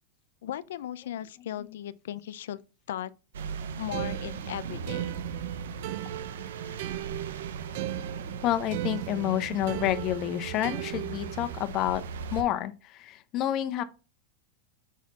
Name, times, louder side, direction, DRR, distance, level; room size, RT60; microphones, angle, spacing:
voice 1, 0.4-3.1 3.8-5.1, left 11 dB, 80° left, 0.5 m, -37 dB
sound 1, 3.3-12.4, right 6 dB, 85° right, 0.8 m, -39 dB
sound 2, 3.9-11.6, right 14 dB, 60° right, 0.5 m, -37 dB
voice 2, 8.4-12.0 12.3-13.8, left 12 dB, 40° left, 0.7 m, -29 dB
6.1 x 4.2 x 4.0 m
supercardioid pair, 125°, 0 cm